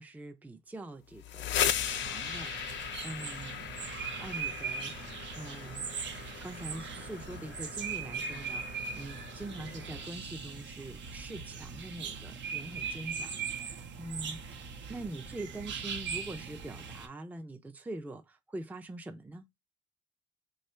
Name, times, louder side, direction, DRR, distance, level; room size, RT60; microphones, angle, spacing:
voice 1, 0.0-1.5 1.8-3.7 4.2-5.9 6.4-14.6 14.9-19.4, right 2 dB, 10° right, 0.4 m, -44 dB
sound 1, 1.1-10.8, left 11 dB, 70° left, 0.4 m, -38 dB
sound 2, 1.6-17.1, right 6 dB, 65° right, 0.7 m, -40 dB
2.8 x 2.3 x 4.2 m
cardioid pair, 90°, 20 cm